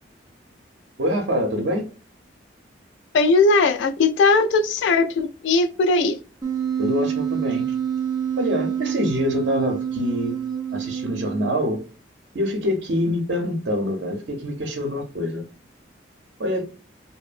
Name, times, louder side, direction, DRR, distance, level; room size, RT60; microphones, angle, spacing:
voice 1, 1.0-1.9 6.8-7.6 8.4-10.3 10.7-11.8 12.3-15.4 16.4-16.6, left 1 dB, 65° right, 0.6 m, -25 dB
voice 2, 3.1-6.2, left 3 dB, 75° left, 0.3 m, -19 dB
Wind instrument woodwind instrument, 6.4-11.8, right 8 dB, 20° right, 0.4 m, -27 dB
2.7 x 2.1 x 2.4 m
head